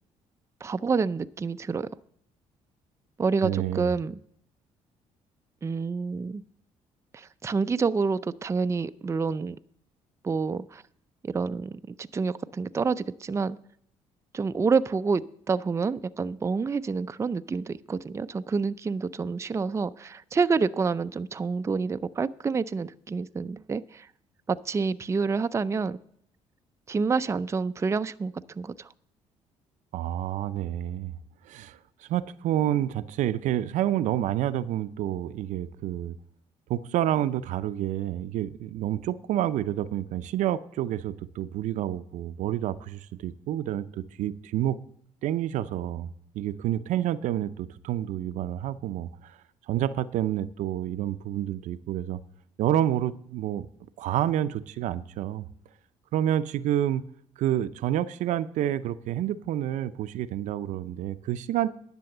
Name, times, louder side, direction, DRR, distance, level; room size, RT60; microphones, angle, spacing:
voice 1, 0.6-1.9 3.2-4.2 5.6-6.4 7.1-9.6 10.2-10.8 11.2-13.6 14.3-24.1 24.5-26.0 26.9-28.9, right 4 dB, 20° right, 0.4 m, -28 dB
voice 2, 3.4-3.9 29.9-31.1 31.5-31.8 32.1-36.2 36.7-44.8 45.2-46.1 46.3-49.4 49.7-52.2 52.6-53.7 54.0-55.4 56.1-57.0 57.4-61.8, right 12 dB, 75° right, 0.5 m, -28 dB
11.0 x 6.9 x 6.6 m
supercardioid pair, 75°, 13 cm